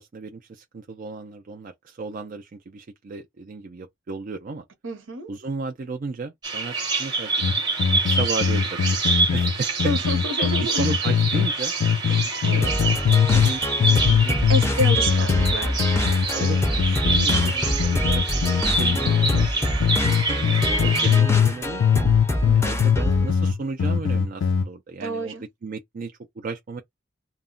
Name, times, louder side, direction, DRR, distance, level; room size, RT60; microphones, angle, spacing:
voice 1, 0.0-4.6 5.3-7.3 8.0-8.8 9.2-9.7 10.4-11.7 12.1-12.7 13.0-14.7 16.3-19.6 19.8-22.1 22.5-25.4 25.6-26.8, right 3 dB, 45° right, 0.4 m, -34 dB
voice 2, 4.8-5.3 9.8-10.9 12.0-12.7 14.5-16.1 22.3-23.0 25.0-25.4, equal, 80° right, 0.9 m, -30 dB
Bird vocalization bird call bird song, 6.4-21.2, right 3 dB, 20° right, 0.8 m, -27 dB
sound 1, 7.4-11.5 11.8-13.5 13.8-19.5 19.8-21.5 21.8-24.7, left 7 dB, 85° left, 0.4 m, -21 dB
sound 2, 12.6-23.3, left 1 dB, 15° left, 0.5 m, -27 dB
2.2 x 2.0 x 3.7 m
head